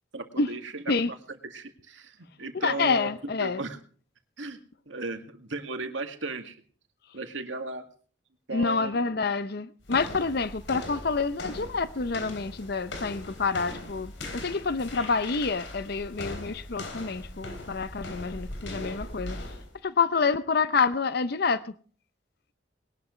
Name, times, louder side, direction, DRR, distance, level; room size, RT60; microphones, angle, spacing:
voice 1, 0.1-1.2 1.4-3.1 3.4-3.8 4.4-4.6 4.9-6.6 7.1-7.8 8.5-9.1, right 3 dB, 85° right, 2.1 m, -36 dB
voice 2, 2.5-3.6 8.5-19.4 19.8-21.7, left 4 dB, 55° left, 0.7 m, -28 dB
sound 1, 9.8-19.8, left 1 dB, 80° left, 3.5 m, -40 dB
21.5 x 12.0 x 3.2 m
head